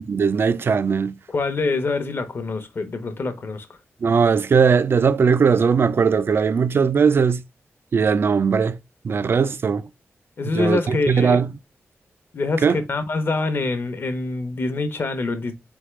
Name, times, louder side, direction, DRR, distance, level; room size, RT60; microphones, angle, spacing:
voice 1, 0.1-1.1 4.0-7.4 7.9-8.8 9.0-9.9 10.5-11.5 12.6-12.8, right 6 dB, 50° right, 0.3 m, -19 dB
voice 2, 1.3-3.7 10.4-11.4 12.3-15.5, left 3 dB, 50° left, 0.8 m, -25 dB
4.1 x 3.5 x 3.1 m
wide cardioid pair, 125°, 5 cm